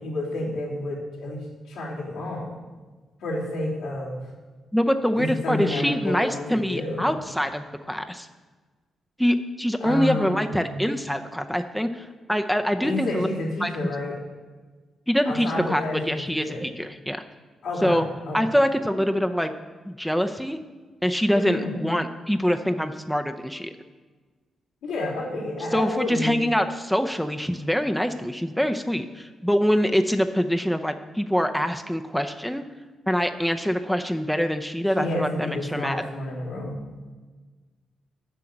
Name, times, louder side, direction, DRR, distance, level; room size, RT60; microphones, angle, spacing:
voice 1, 0.0-2.5 3.2-4.2 5.2-7.2 9.8-10.9 12.8-14.2 15.2-16.6 17.6-18.4 21.3-21.8 24.8-26.4 34.9-36.8, left 1 dB, 90° left, -6 dB, 2.8 m, -30 dB
voice 2, 4.7-8.3 9.2-13.3 13.6-13.7 15.1-17.2 17.8-18.1 18.3-19.5 19.8-20.6 21.0-23.7 25.7-32.6 33.1-36.0, equal, ahead, 6 dB, 0.6 m, -24 dB
7.8 x 5.7 x 7.5 m, 1.4 s
supercardioid pair, 60°, 0 cm